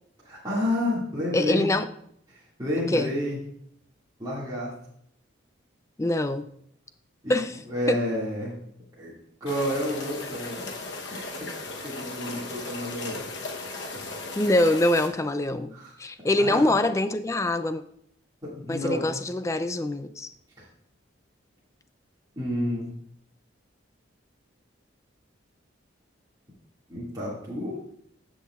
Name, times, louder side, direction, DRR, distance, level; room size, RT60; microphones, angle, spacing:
voice 1, 0.2-1.7 2.3-3.4 4.2-4.7 7.2-7.4 7.7-8.5 9.0-9.1 9.4-10.8 11.1-11.5 11.8-13.3 13.9-14.1 15.7-15.9 16.4-16.6 18.4-19.1 20.6-20.7 22.4-22.9 26.9-27.8, left 1 dB, 20° right, -8 dB, 2.1 m, -30 dB
voice 2, 1.3-1.9 2.9-3.1 6.0-6.5 7.3-7.6 7.9-8.0 14.4-15.7 16.0-17.8 18.7-20.3, left 1 dB, 15° left, 11 dB, 0.3 m, -24 dB
sound 1, 9.5-15.1, left 3 dB, 60° left, 1.0 m, -36 dB
15.0 x 6.2 x 2.4 m, 0.69 s
head